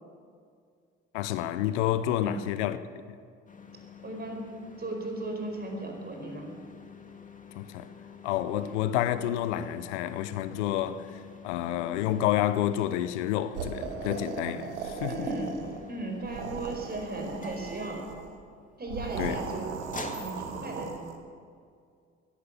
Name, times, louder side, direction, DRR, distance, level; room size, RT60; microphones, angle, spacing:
voice 1, 1.1-2.8 7.6-7.9 8.2-15.3 19.2-19.4, left 12 dB, 80° left, 0.8 m, -29 dB
sound 1, 3.5-21.2, left 5 dB, 20° left, 2.1 m, -48 dB
voice 2, 4.0-6.5 15.1-18.1 18.8-19.7 20.2-21.0, right 2 dB, 30° right, 4.7 m, -36 dB
sound 2, 13.5-15.8 16.2-18.3 18.8-21.1, right 5 dB, 80° right, 1.4 m, -38 dB
17.0 x 11.5 x 7.2 m
hypercardioid pair, 60°, 35 cm